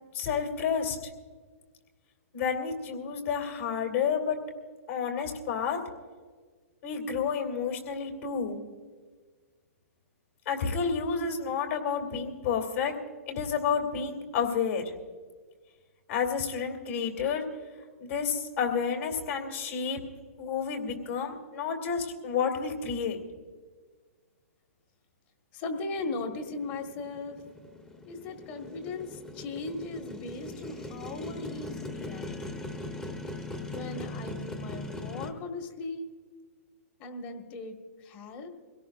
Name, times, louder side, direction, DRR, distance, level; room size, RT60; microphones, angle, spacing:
voice 1, 0.1-1.0 2.3-4.4 4.9-5.8 6.8-8.6 10.5-12.9 13.3-14.8 16.1-17.4 18.0-20.0 20.4-23.2, left 6 dB, 60° left, 3 dB, 2.6 m, -30 dB
voice 2, 25.5-27.4 28.0-32.3 33.7-36.1 37.0-37.7 38.0-38.5, left 3 dB, 40° left, 4 dB, 1.6 m, -38 dB
Motorcycle, 26.0-35.3, left 2 dB, 10° left, 1.0 m, -40 dB
23.5 x 17.0 x 2.5 m, 1.5 s
hypercardioid pair, 135°, 8 cm